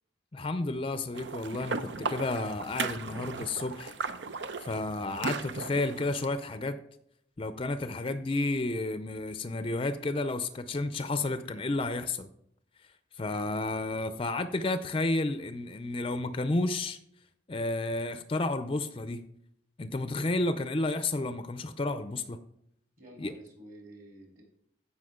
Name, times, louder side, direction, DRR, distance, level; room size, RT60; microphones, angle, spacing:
voice 1, 0.3-3.9 4.6-6.8 7.4-12.3 13.2-17.0 17.5-19.2 19.8-22.4 23.2-23.3, left 2 dB, 30° left, 0.5 m, -31 dB
sound 1, 1.1-6.3, right 4 dB, 80° right, 0.7 m, -36 dB
voice 2, 23.0-24.4, right 1 dB, 50° right, 3.9 m, -50 dB
15.5 x 5.9 x 3.7 m
head